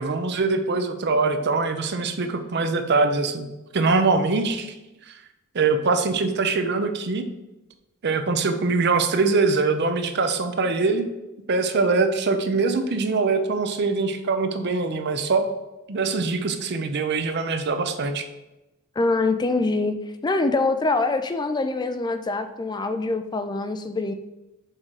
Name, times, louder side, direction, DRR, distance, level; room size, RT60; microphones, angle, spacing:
voice 1, 0.0-3.5 3.7-4.7 5.5-7.3 8.0-11.1 11.5-15.5 15.9-18.3, right 3 dB, 55° right, 8 dB, 0.6 m, -23 dB
voice 2, 19.0-20.0 20.2-24.1, left 3 dB, 20° left, 8 dB, 0.3 m, -24 dB
6.4 x 3.7 x 4.8 m, 0.99 s
head